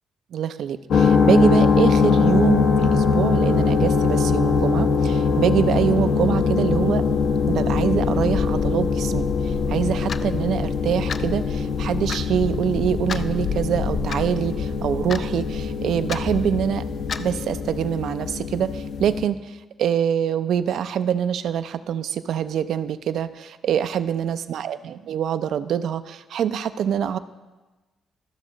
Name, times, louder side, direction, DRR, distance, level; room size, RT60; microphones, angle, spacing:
voice 1, 0.3-7.0 7.5-16.9 17.2-27.2, right 9 dB, 70° right, 12 dB, 0.4 m, -25 dB
sound 1, 0.9-19.3, left 5 dB, 70° left, 0.9 m, -22 dB
Clock, 10.1-10.3 11.1-11.3 12.1-12.2 13.1-13.3 14.1-14.2 15.1-15.3 16.1-16.2 17.1-17.3, left 6 dB, 50° left, 0.4 m, -31 dB
13.5 x 6.3 x 3.9 m, 1.2 s
cardioid pair, 90°, 0 cm